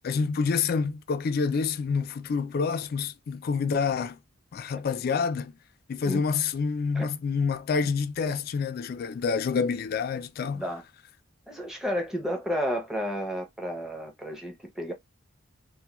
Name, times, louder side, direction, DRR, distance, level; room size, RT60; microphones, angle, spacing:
voice 1, 0.0-4.2 4.5-5.5 5.9-10.6, left 5 dB, 50° left, 0.3 m, -27 dB
voice 2, 11.5-14.9, equal, ahead, 0.6 m, -32 dB
2.3 x 2.1 x 2.9 m
head